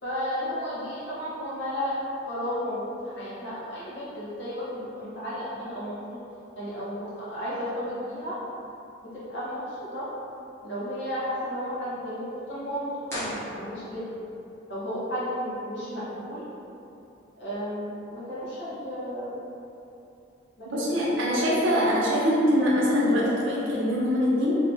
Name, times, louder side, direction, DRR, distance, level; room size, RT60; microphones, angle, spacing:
voice 1, 0.0-2.0 2.3-6.2 6.5-8.4 9.1-10.1 10.6-14.2 14.7-16.5 17.4-19.4 20.6-21.9, equal, 60° left, -10 dB, 1.1 m, -33 dB
sound 1, 13.0-14.2, equal, 15° left, 1.0 m, -37 dB
voice 2, 20.7-24.6, equal, 75° right, -5 dB, 0.7 m, -23 dB
2.8 x 2.7 x 3.5 m, 2.8 s
head